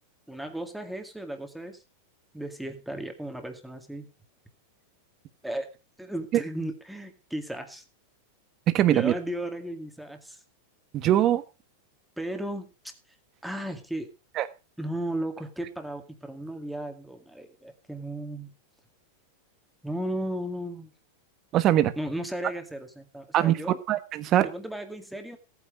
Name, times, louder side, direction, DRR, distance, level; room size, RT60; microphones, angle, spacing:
voice 1, 0.3-1.8 2.3-4.1 5.4-5.7 6.0-7.8 8.9-10.4 12.2-12.7 13.4-14.1 14.8-18.5 19.8-20.9 22.0-23.8 24.4-25.4, right 1 dB, ahead, 2.1 m, -35 dB
voice 2, 8.7-9.1 10.9-11.4 14.4-14.5 21.5-21.9 23.3-23.6 23.9-24.5, right 12 dB, 35° right, 1.4 m, -22 dB
14.5 x 9.4 x 5.0 m
supercardioid pair, 135°, 0 cm